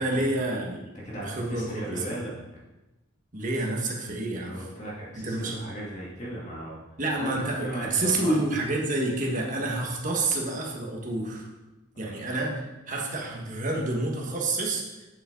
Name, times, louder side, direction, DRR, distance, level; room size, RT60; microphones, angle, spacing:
voice 1, 0.0-0.9 1.2-2.0 3.3-4.7 5.1-5.6 7.0-11.5 12.0-12.6 12.9-15.1, right 2 dB, 35° right, -1 dB, 1.5 m, -28 dB
voice 2, 1.0-2.3 4.3-6.8 7.2-8.5 10.1-10.3 12.0-12.2, right 1 dB, 35° left, -5 dB, 2.2 m, -37 dB
8.4 x 7.4 x 3.9 m, 1.1 s
head